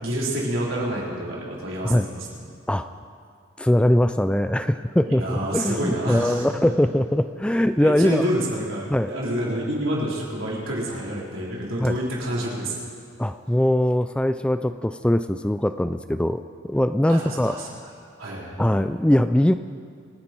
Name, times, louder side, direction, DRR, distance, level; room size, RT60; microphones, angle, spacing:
voice 1, 0.0-2.4 5.1-6.4 7.8-12.9 17.1-17.7 18.2-18.5, right 1 dB, 85° right, -5 dB, 4.1 m, -28 dB
voice 2, 3.6-8.3 8.9-9.1 11.8-11.9 13.2-17.6 18.6-19.5, left 1 dB, 5° left, 10 dB, 0.3 m, -21 dB
27.0 x 9.5 x 4.5 m, 2.4 s
head